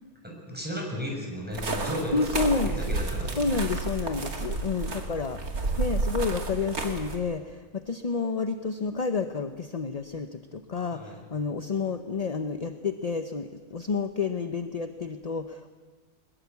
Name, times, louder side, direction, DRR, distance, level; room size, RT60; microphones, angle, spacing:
voice 1, 0.2-3.4 10.9-11.2, equal, 5° right, -1 dB, 6.8 m, -34 dB
sound 1, 1.5-7.2, right 3 dB, 80° right, 2.8 m, -31 dB
voice 2, 2.1-2.8 3.4-5.4 5.8-15.7, left 4 dB, 35° left, 8 dB, 0.8 m, -30 dB
22.0 x 21.0 x 8.3 m, 1.4 s
omnidirectional pair, 1.5 m